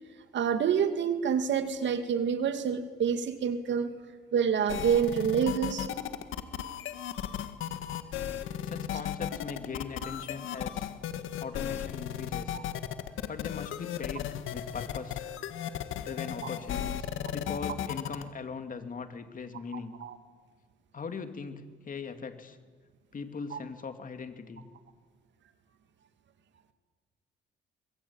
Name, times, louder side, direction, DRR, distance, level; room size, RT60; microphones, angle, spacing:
voice 1, 0.3-3.9 4.3-5.9 12.5-12.6 20.0-20.2 23.5-23.6, right 7 dB, 65° right, 8 dB, 2.3 m, -27 dB
sound 1, 4.7-18.2, left 10 dB, 85° left, 1.7 m, -35 dB
voice 2, 8.6-10.9 11.4-12.6 13.3-15.3 16.0-19.9 20.9-22.6 23.1-24.6, left 5 dB, 45° left, 7 dB, 2.8 m, -40 dB
25.0 x 22.0 x 8.9 m, 1.5 s
cardioid pair, 90°, 20 cm